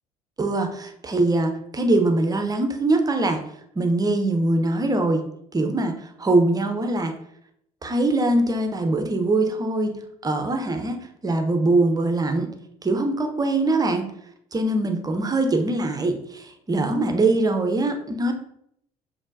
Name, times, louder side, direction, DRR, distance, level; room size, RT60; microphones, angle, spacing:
voice 1, 0.4-3.5 3.8-5.2 5.5-7.1 7.8-12.5 12.8-14.0 14.5-18.3, right 2 dB, 20° right, 5 dB, 0.7 m, -22 dB
6.2 x 3.2 x 2.6 m, 0.72 s
figure-of-eight pair, 60°, 19 cm